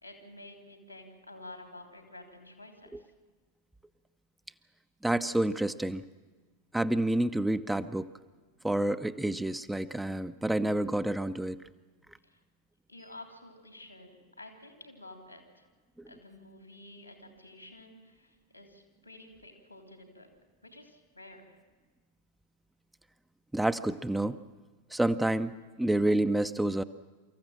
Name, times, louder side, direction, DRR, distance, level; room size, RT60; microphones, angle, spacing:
voice 1, 0.0-3.1 12.2-12.4 12.9-15.7 16.1-20.3 20.6-21.6, left 1 dB, 90° left, 4 dB, 3.0 m, -50 dB
voice 2, 5.0-6.0 6.7-8.1 8.6-11.6 23.5-24.4 24.9-26.8, right 1 dB, 5° right, 11 dB, 0.5 m, -29 dB
25.0 x 14.0 x 7.4 m, 1.4 s
figure-of-eight pair, 90°, 0 cm